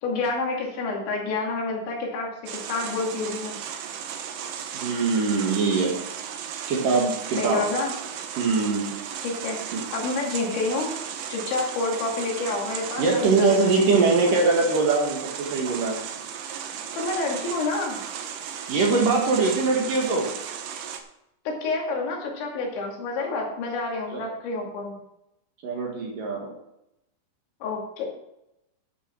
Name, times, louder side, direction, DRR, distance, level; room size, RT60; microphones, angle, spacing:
voice 1, 0.0-3.6 7.4-7.9 9.2-9.6 9.9-10.9 11.3-13.9 17.0-18.0 21.5-25.0 27.6-28.1, left 3 dB, 85° left, 0 dB, 4.6 m, -28 dB
sound 1, 2.5-21.0, right 8 dB, 75° right, 1.9 m, -35 dB
voice 2, 4.7-5.9 6.7-7.6 8.4-8.9 9.7-9.8 13.0-15.9 18.7-20.3 24.1-24.2 25.6-26.5, right 4 dB, 55° right, 0 dB, 2.9 m, -22 dB
11.5 x 6.2 x 6.2 m, 0.84 s
omnidirectional pair, 5.1 m